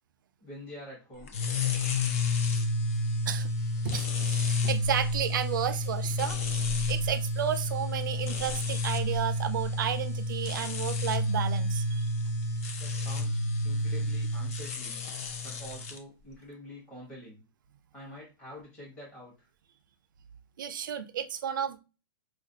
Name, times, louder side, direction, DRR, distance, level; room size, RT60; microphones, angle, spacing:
voice 1, 0.4-1.4 12.8-15.0 15.4-17.4 17.9-19.5, left 1 dB, 10° left, 1.0 m, -46 dB
sound 1, 1.3-16.0, left 2 dB, 35° left, 0.5 m, -30 dB
voice 2, 3.8-12.1 20.6-21.8, right 9 dB, 55° right, 0.4 m, -32 dB
4.4 x 2.4 x 2.7 m
hypercardioid pair, 175°, 13 cm